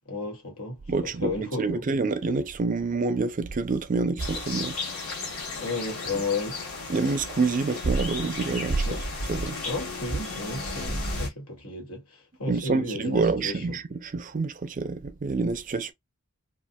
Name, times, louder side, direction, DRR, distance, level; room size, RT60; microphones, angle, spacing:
voice 1, 0.1-1.9 5.6-6.6 8.8-9.1 9.6-13.8, left 3 dB, 90° left, 2.0 m, -33 dB
voice 2, 0.9-4.8 6.9-9.0 9.3-9.6 12.5-15.9, right 4 dB, 35° right, 0.5 m, -27 dB
sound 1, 4.2-11.3, left 3 dB, 65° left, 2.1 m, -34 dB
4.1 x 2.4 x 2.2 m
head